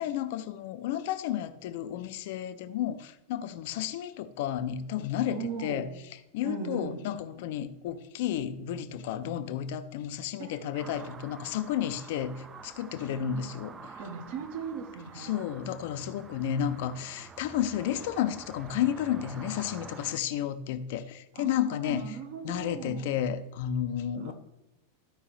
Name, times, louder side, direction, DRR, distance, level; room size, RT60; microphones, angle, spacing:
voice 1, 0.0-5.9 6.3-14.0 15.2-22.1 22.4-24.3, left 10 dB, 50° left, 11 dB, 0.6 m, -32 dB
voice 2, 5.3-5.9 6.4-7.0 10.4-11.2 14.0-15.4 21.3-23.1 24.2-24.3, right 5 dB, 50° right, 5 dB, 1.3 m, -38 dB
sound 1, 10.8-20.2, right 5 dB, 20° right, 0.5 m, -48 dB
13.0 x 5.2 x 3.2 m, 0.90 s
figure-of-eight pair, 90°, 0 cm